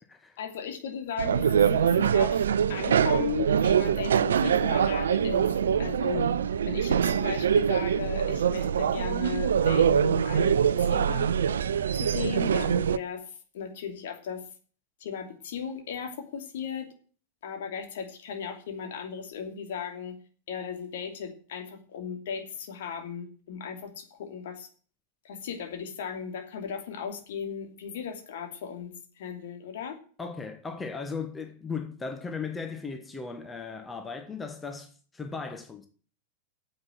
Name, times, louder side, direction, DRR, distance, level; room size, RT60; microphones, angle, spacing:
voice 1, 0.4-5.5 5.8-6.2 6.7-11.3 12.0-13.2 13.5-14.4 15.0-16.9 17.4-20.1 20.5-24.7 25.2-30.0, left 7 dB, 55° left, 2.8 m, -36 dB
sound 1, 1.2-13.0, right 8 dB, 65° right, 0.5 m, -24 dB
voice 2, 30.2-35.9, left 5 dB, 15° left, 1.4 m, -37 dB
9.5 x 8.0 x 8.7 m
figure-of-eight pair, 90°, 0 cm